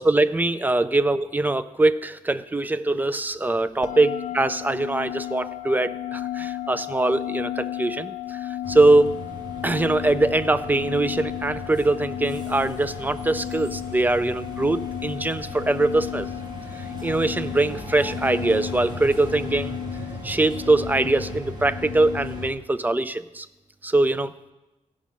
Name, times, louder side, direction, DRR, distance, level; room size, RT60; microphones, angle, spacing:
voice 1, 0.0-9.2 9.6-16.3 16.8-19.8 20.2-23.5 23.8-24.3, right 2 dB, 15° right, 13 dB, 0.4 m, -22 dB
sound 1, 3.8-22.5, left 13 dB, 90° left, 0.5 m, -34 dB
sound 2, 8.6-22.5, equal, 35° right, 1.8 m, -37 dB
16.0 x 6.2 x 5.8 m, 1.0 s
wide cardioid pair, 145°, 13 cm